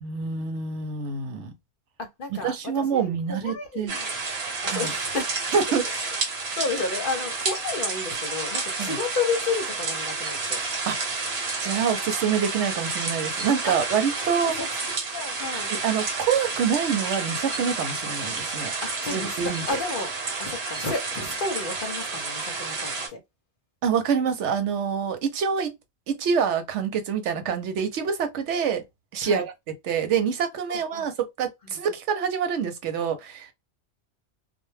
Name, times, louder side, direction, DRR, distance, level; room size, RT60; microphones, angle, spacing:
voice 1, 0.0-1.5 2.4-3.9 4.7-4.9 5.5-5.8 6.2-6.3 8.8-9.0 10.9-11.2 11.6-14.6 15.5-18.7 19.1-19.6 23.8-25.7 26.1-28.8 29.1-29.5 29.8-33.5, right 7 dB, 85° right, 0.9 m, -26 dB
voice 2, 2.0-4.2 4.6-5.4 5.9-6.1 6.6-10.6 13.6-13.7 14.2-15.7 18.8-20.1 20.4-23.2 29.2-29.4 30.7-31.0 31.6-31.8, left 4 dB, 55° left, 0.8 m, -32 dB
sound 1, 3.9-23.1, right 3 dB, 65° right, 1.1 m, -30 dB
2.2 x 2.1 x 3.1 m
omnidirectional pair, 1.2 m